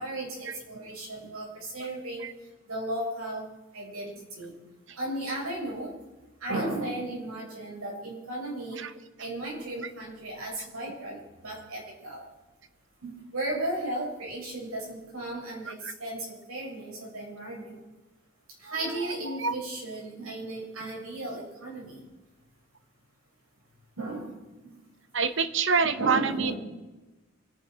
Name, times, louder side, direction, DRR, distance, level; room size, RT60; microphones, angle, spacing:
voice 1, 0.0-2.3 2.7-3.5 3.7-4.5 5.0-5.9 6.4-8.8 9.2-12.3 13.0-17.8 18.6-22.0 24.0-24.4 24.6-24.7 25.8-26.5, right 1 dB, 90° right, -3 dB, 7.4 m, -35 dB
voice 2, 18.8-19.5 25.1-26.5, right 5 dB, 60° right, 11 dB, 1.0 m, -28 dB
28.0 x 10.5 x 4.8 m, 1.1 s
head